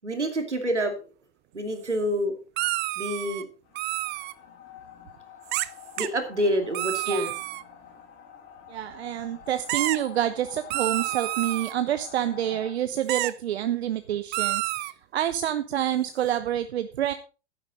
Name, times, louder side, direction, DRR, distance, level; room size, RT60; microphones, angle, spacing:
voice 1, 0.0-1.1 1.5-2.3 3.0-3.5 6.0-7.3, equal, 90° right, 6 dB, 2.5 m, -27 dB
sound 1, 2.6-3.4 3.7-4.3 5.5-5.7 6.0-6.1 6.7-7.6 9.7-10.0 10.7-11.7 13.1-13.3 14.3-14.9, right 18 dB, 30° right, 0.6 m, -29 dB
sound 2, 3.6-12.7, left 9 dB, 35° left, 4.4 m, -47 dB
voice 2, 8.7-14.6 15.1-17.1, right 11 dB, 65° right, 10 dB, 0.9 m, -27 dB
11.5 x 10.0 x 4.1 m, 0.34 s
figure-of-eight pair, 95°, 34 cm